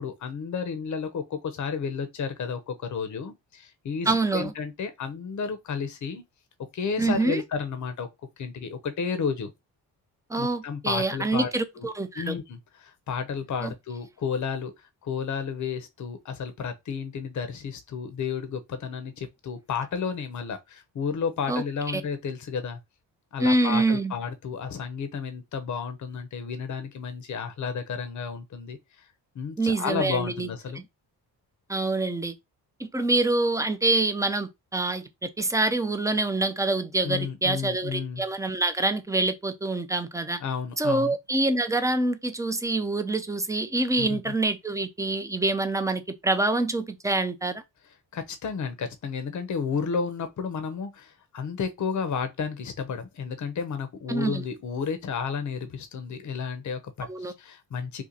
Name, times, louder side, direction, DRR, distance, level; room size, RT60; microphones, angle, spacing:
voice 1, 0.0-6.2 6.7-8.1 8.4-9.5 10.4-11.5 11.8-11.9 12.2-22.8 23.3-29.1 29.3-30.8 37.0-38.2 40.4-41.1 44.0-44.3 48.1-58.0, left 6 dB, 45° left, 0.8 m, -32 dB
voice 2, 4.1-4.5 7.0-7.4 10.3-12.4 13.6-13.7 21.5-21.6 21.9-22.0 23.4-24.1 29.6-30.5 31.7-32.3 32.8-40.4 40.8-47.6 54.1-54.4 57.1-57.3, right 2 dB, 10° right, 0.5 m, -26 dB
2.9 x 2.4 x 3.8 m
supercardioid pair, 65°, 42 cm